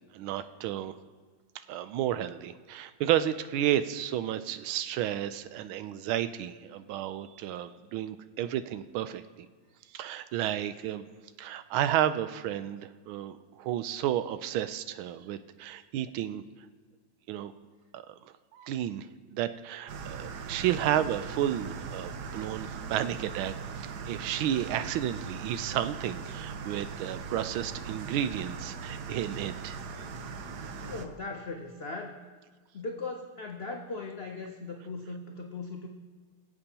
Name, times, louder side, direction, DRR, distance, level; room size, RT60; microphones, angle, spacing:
voice 1, 0.1-0.9 1.7-9.5 9.9-11.1 11.4-16.4 17.3-17.5 17.9-18.1 18.5-29.8, right 11 dB, 85° right, 12 dB, 1.4 m, -32 dB
sound 1, 19.9-31.0, right 5 dB, 65° right, 1.1 m, -40 dB
voice 2, 30.8-32.2 32.7-35.9, left 3 dB, 80° left, 2 dB, 0.5 m, -38 dB
21.5 x 7.8 x 2.9 m, 1.5 s
omnidirectional pair, 2.2 m